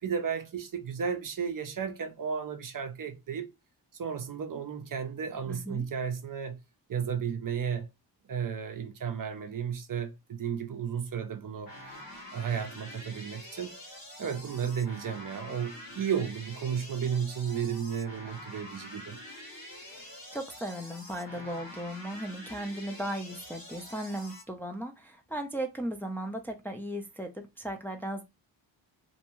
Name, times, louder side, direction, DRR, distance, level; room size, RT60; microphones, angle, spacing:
voice 1, 0.0-3.5 3.9-6.6 6.9-7.9 8.3-11.7 12.3-13.7 14.2-19.2, right 7 dB, 45° right, 0.6 m, -33 dB
voice 2, 5.4-5.9 19.8-28.2, right 1 dB, 5° left, 0.5 m, -37 dB
sound 1, 11.7-24.4, left 1 dB, 50° left, 1.1 m, -46 dB
2.6 x 2.2 x 3.0 m
cardioid pair, 50°, 46 cm